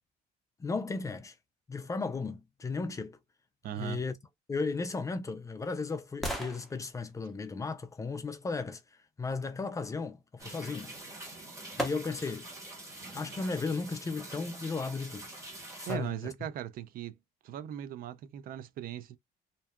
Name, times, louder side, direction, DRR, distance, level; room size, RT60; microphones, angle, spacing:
voice 1, 0.6-1.4 1.7-3.2 3.8-4.1 4.5-8.8 9.2-10.9 11.7-12.5 13.1-15.3 15.8-16.3, left 4 dB, 20° left, 0.4 m, -35 dB
voice 2, 3.6-4.0 15.9-17.1 17.4-19.2, right 11 dB, 60° right, 0.4 m, -38 dB
sound 1, 4.9-8.8 10.9-11.0 11.8-12.5 13.0-13.1, equal, ahead, 0.7 m, -41 dB
sound 2, 10.4-15.9, right 2 dB, 15° right, 1.2 m, -45 dB
2.6 x 2.3 x 2.2 m
cardioid pair, 110°, 17 cm